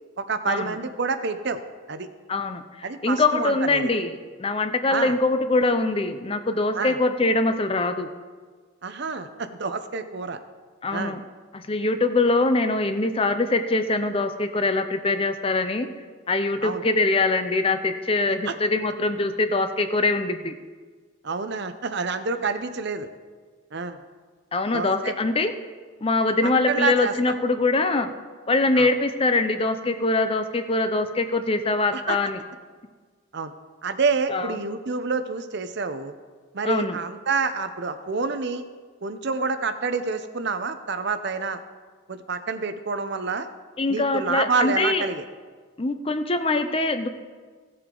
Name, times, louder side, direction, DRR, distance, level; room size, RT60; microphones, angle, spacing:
voice 1, 0.2-1.6 1.9-2.1 2.8-3.9 4.9-5.2 6.7-7.0 8.8-10.4 10.9-11.2 16.6-16.9 18.4-18.6 21.2-23.1 23.7-24.0 24.7-25.1 26.4-27.3 28.8-28.9 31.9-32.2 33.3-33.5 33.8-36.1 36.5-38.6 39.0-41.6 42.1-43.5 43.9-45.3, right 4 dB, 50° right, 10 dB, 0.6 m, -28 dB
voice 2, 2.3-4.1 4.4-8.1 10.8-11.2 11.5-15.9 16.3-20.5 24.5-25.5 26.0-28.1 28.5-32.4 34.3-34.5 36.6-37.0 43.8-45.0 45.8-47.1, left 3 dB, 25° left, 8 dB, 0.5 m, -23 dB
16.0 x 7.7 x 3.8 m, 1.5 s
head